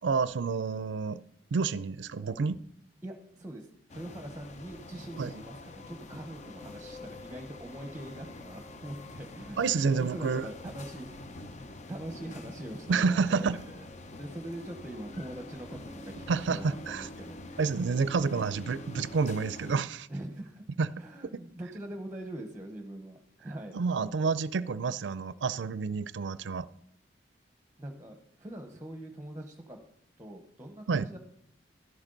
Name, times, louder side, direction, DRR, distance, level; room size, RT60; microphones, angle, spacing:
voice 1, 0.0-1.2 1.5-2.6 5.2-5.3 9.6-10.5 12.9-13.6 16.3-17.1 17.6-20.1 20.8-20.9 23.7-26.7 30.9-31.1, right 5 dB, 80° right, 0.4 m, -29 dB
voice 2, 3.0-9.6 9.9-11.1 11.3-13.9 14.2-17.4 20.1-20.6 21.0-23.8 27.8-29.8 30.2-31.2, right 1 dB, 15° right, 1.0 m, -43 dB
sound 1, 3.9-19.8, left 2 dB, 40° left, 0.8 m, -46 dB
13.0 x 11.5 x 3.9 m
head